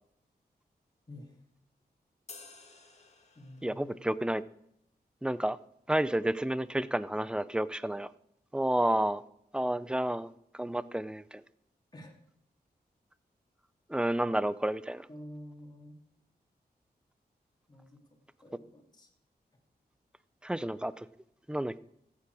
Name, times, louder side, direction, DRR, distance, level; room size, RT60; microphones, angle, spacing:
voice 1, 1.1-1.4 3.3-3.9 11.9-12.2 15.1-16.0 17.7-18.0 18.4-19.1, left 1 dB, 25° left, 1 dB, 3.0 m, -49 dB
sound 1, 2.3-3.9, left 3 dB, 40° left, 1.8 m, -52 dB
voice 2, 3.6-4.4 5.2-5.6 5.9-8.1 8.5-9.2 9.5-11.4 13.9-15.1 20.4-21.1 21.5-21.8, right 1 dB, 5° right, 17 dB, 0.5 m, -30 dB
15.0 x 8.7 x 4.8 m, 0.77 s
wide cardioid pair, 85°, 17 cm